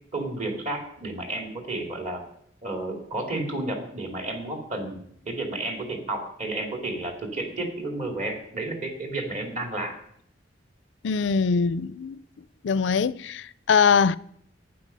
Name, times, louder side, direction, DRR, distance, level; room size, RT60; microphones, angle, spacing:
voice 1, 0.1-2.3 2.6-9.9, right 2 dB, 40° right, 2.5 m, -32 dB
voice 2, 11.0-12.2 12.6-14.2, left 5 dB, 70° left, 0.4 m, -22 dB
12.0 x 9.8 x 5.4 m
head